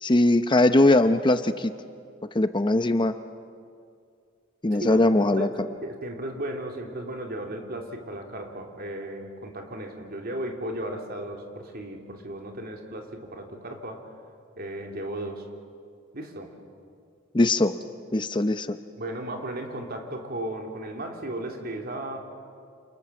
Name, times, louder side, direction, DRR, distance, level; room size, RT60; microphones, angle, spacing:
voice 1, 0.0-1.7 2.3-3.1 4.6-5.5 17.3-17.7 18.1-18.8, left 2 dB, 25° left, 10 dB, 0.7 m, -20 dB
voice 2, 4.7-14.1 14.6-15.5 16.1-16.5 19.0-22.2, right 1 dB, 50° right, 2 dB, 3.3 m, -35 dB
28.5 x 28.5 x 7.2 m, 2.3 s
head